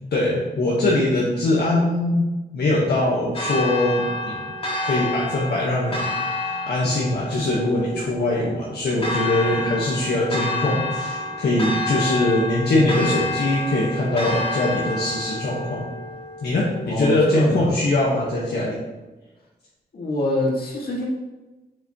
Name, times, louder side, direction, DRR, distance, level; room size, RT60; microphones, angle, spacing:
voice 1, 0.1-2.3 2.5-4.4 4.8-6.1 6.7-15.8 16.4-18.7, left 1 dB, 80° left, -6 dB, 1.4 m, -22 dB
Church bell, 3.3-17.3, left 2 dB, 35° left, 1.9 m, -29 dB
voice 2, 16.9-17.8 19.9-21.1, left 1 dB, 65° left, -3 dB, 2.0 m, -25 dB
7.0 x 6.9 x 3.0 m, 1.1 s
wide cardioid pair, 150°, 17 cm